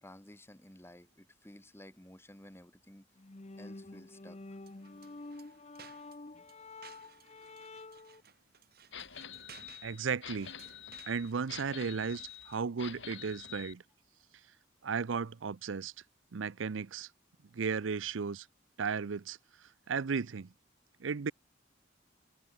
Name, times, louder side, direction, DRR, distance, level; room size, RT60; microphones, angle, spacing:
voice 1, 0.0-3.1 3.6-4.4, left 1 dB, 15° left, 3.4 m, -54 dB
sound 1, 3.2-8.2, left 2 dB, 35° left, 0.9 m, -49 dB
sound 2, 4.6-12.7, right 8 dB, 55° right, 6.2 m, -59 dB
sound 3, 8.9-13.7, left 9 dB, 65° left, 4.3 m, -47 dB
voice 2, 9.8-10.5 11.1-13.8 14.8-15.9 16.3-17.1 17.5-18.5 18.8-19.4 19.9-20.5 21.0-21.3, right 5 dB, 80° right, 0.6 m, -35 dB
open air
head